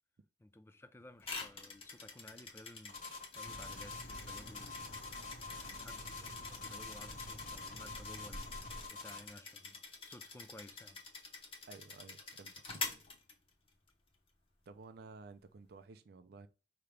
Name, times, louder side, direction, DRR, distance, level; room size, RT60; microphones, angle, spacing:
voice 1, 0.4-3.0 3.3-4.8 5.1-6.1 6.5-8.6 8.9-11.0, left 1 dB, 15° left, 0.4 m, -56 dB
sound 1, 1.2-13.9, left 4 dB, 35° left, 1.0 m, -47 dB
sound 2, 2.9-9.3, left 4 dB, 50° left, 1.4 m, -47 dB
sound 3, 3.4-8.9, equal, 70° left, 1.2 m, -51 dB
voice 2, 11.7-12.9 14.7-16.5, right 4 dB, 60° right, 0.4 m, -54 dB
4.9 x 2.9 x 3.3 m
head